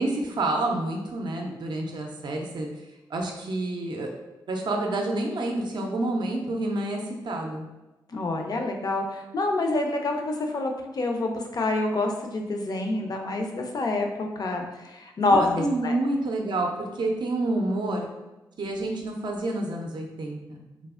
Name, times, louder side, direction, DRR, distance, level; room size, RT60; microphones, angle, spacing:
voice 1, 0.0-2.7 3.1-4.1 4.5-7.6 15.3-18.1 18.6-20.6, right 2 dB, 55° right, 1 dB, 0.4 m, -28 dB
voice 2, 8.1-16.0, left 2 dB, 45° left, 3 dB, 0.5 m, -27 dB
3.2 x 2.0 x 2.4 m, 1.1 s
supercardioid pair, 50°, 9 cm